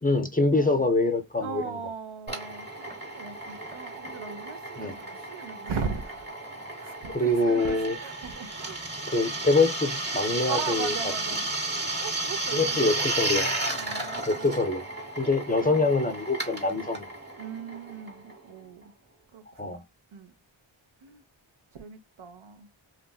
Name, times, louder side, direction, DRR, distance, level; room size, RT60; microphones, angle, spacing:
voice 1, 0.0-1.8 4.8-4.9 7.1-8.0 9.1-10.9 12.5-13.5 14.3-14.8 15.2-17.1 19.6-19.8, left 2 dB, 20° left, 0.4 m, -25 dB
voice 2, 0.5-0.8 1.4-6.3 6.8-8.8 10.5-11.5 12.0-13.1 13.7-14.6 15.7-15.9 17.4-18.9 19.3-19.8 20.1-20.3 21.0-21.2 21.7-22.7, right 5 dB, 80° right, 0.7 m, -38 dB
Drill, 2.3-18.6, right 2 dB, 20° right, 1.0 m, -33 dB
3.0 x 2.5 x 2.3 m
wide cardioid pair, 50°, 49 cm